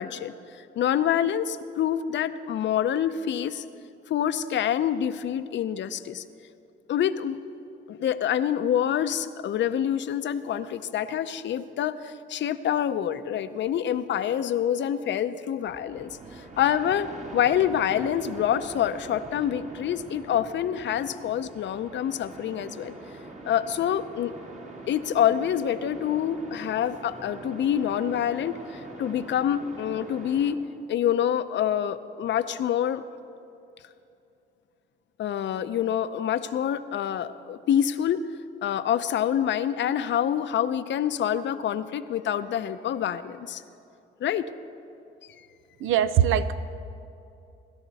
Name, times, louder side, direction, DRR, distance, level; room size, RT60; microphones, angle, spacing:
voice 1, 0.0-3.6 4.1-6.2 6.9-7.4 7.9-22.9 23.4-24.3 24.9-30.6 30.9-33.0 35.2-38.2 38.6-43.6 44.2-44.5, left 9 dB, 65° left, 12 dB, 0.7 m, -26 dB
sound 1, 15.7-30.5, right 2 dB, 35° right, 1.9 m, -43 dB
voice 2, 45.8-46.5, right 9 dB, 80° right, 12 dB, 0.7 m, -21 dB
22.5 x 12.5 x 4.1 m, 2.7 s
cardioid pair, 90°, 20 cm